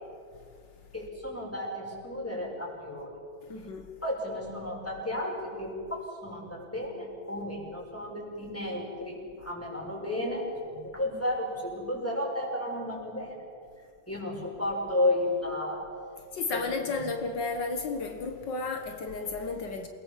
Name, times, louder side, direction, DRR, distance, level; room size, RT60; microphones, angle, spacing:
voice 1, 0.9-3.1 4.0-13.4 14.1-15.8 16.5-17.0, left 1 dB, 5° left, 6.1 m, -33 dB
voice 2, 3.5-3.9 16.3-19.9, left 3 dB, 80° left, 2.2 m, -33 dB
28.5 x 20.0 x 7.4 m
omnidirectional pair, 1.9 m